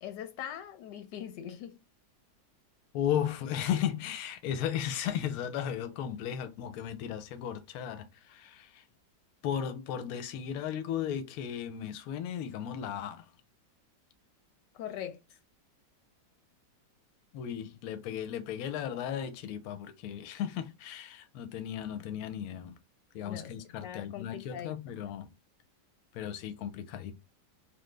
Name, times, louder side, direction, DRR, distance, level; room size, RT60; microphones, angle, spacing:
voice 1, 0.0-1.8 14.7-15.2 23.2-23.5 23.8-25.0, left 10 dB, 90° left, 1.3 m, -41 dB
voice 2, 2.9-8.8 9.4-13.3 17.3-22.8 23.1-25.3 26.1-27.2, left 9 dB, 70° left, 1.0 m, -35 dB
3.1 x 2.2 x 3.2 m
omnidirectional pair, 1.8 m